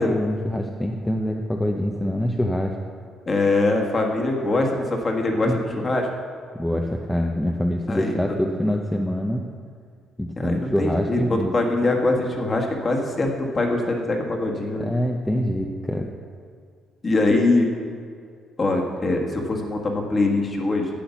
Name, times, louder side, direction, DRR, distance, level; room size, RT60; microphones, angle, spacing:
voice 1, 0.0-2.7 5.4-5.6 6.5-9.5 10.2-11.5 14.8-16.1, equal, 5° left, 1 dB, 0.7 m, -25 dB
voice 2, 3.3-6.1 7.9-8.1 10.4-14.9 17.0-17.7 18.6-20.9, left 2 dB, 25° left, 1 dB, 1.6 m, -23 dB
10.0 x 8.5 x 7.1 m, 2.2 s
cardioid pair, 145°, 0 cm